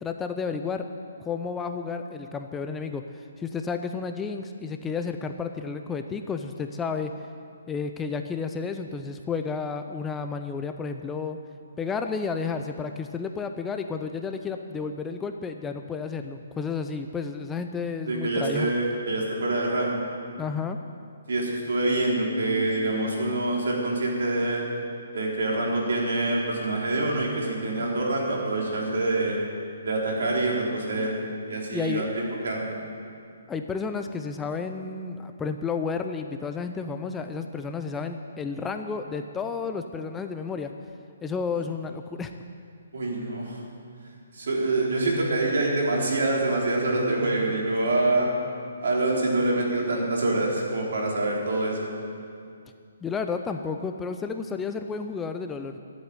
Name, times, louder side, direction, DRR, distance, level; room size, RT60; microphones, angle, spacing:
voice 1, 0.0-0.9 1.2-3.0 3.4-7.1 7.7-11.4 11.8-18.7 20.4-20.8 31.7-32.0 33.5-40.7 41.2-42.3 53.0-55.8, left 5 dB, 10° left, 6 dB, 0.5 m, -31 dB
voice 2, 18.1-20.1 21.3-24.6 25.1-29.4 29.8-31.1 31.5-32.8 42.9-43.6 44.3-48.3 48.8-51.9, right 2 dB, 70° right, -2 dB, 4.0 m, -26 dB
13.0 x 8.3 x 9.6 m, 2.3 s
hypercardioid pair, 160°, 0 cm